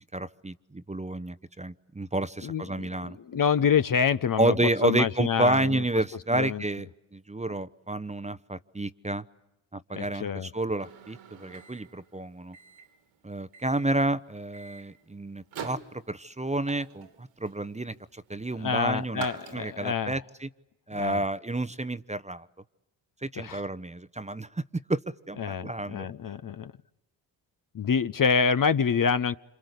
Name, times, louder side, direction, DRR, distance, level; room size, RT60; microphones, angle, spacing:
voice 1, 0.1-3.2 4.4-9.2 9.7-12.6 13.2-19.2 19.5-20.5 20.9-22.5 23.2-24.6 24.9-25.0 25.3-26.1, right 2 dB, 15° right, 13 dB, 0.9 m, -30 dB
voice 2, 2.4-4.6 4.8-5.8 6.3-6.6 9.9-10.5 18.6-20.1 20.9-21.2 23.4-23.6 25.4-26.7 27.7-29.4, left 6 dB, 40° left, 12 dB, 0.9 m, -27 dB
Microwave oven, 10.8-20.0, right 7 dB, 80° right, 3.0 m, -46 dB
27.0 x 26.5 x 8.3 m, 0.94 s
hypercardioid pair, 45°, 49 cm